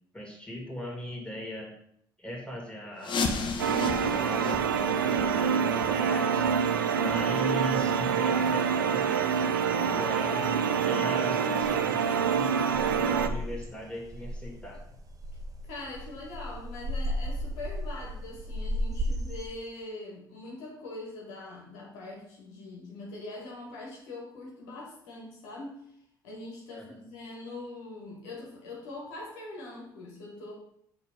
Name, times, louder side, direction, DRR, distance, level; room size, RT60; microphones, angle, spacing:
voice 1, 0.1-1.8 2.2-3.5 4.0-6.5 7.0-10.5 10.8-14.8 26.7-27.0, equal, 10° left, -1 dB, 2.4 m, -39 dB
sound 1, 3.0-8.6 8.9-9.1 9.6-9.7 10.3-10.4 10.9-11.0, left 4 dB, 45° left, 0.9 m, -36 dB
sound 2, 3.6-13.3, right 7 dB, 90° right, 0.4 m, -26 dB
sound 3, 11.5-19.4, equal, 30° right, 1.0 m, -35 dB
voice 2, 15.6-25.9 26.2-30.5, left 2 dB, 75° left, -2 dB, 1.5 m, -42 dB
6.4 x 3.3 x 5.1 m, 0.69 s
hypercardioid pair, 50°, 11 cm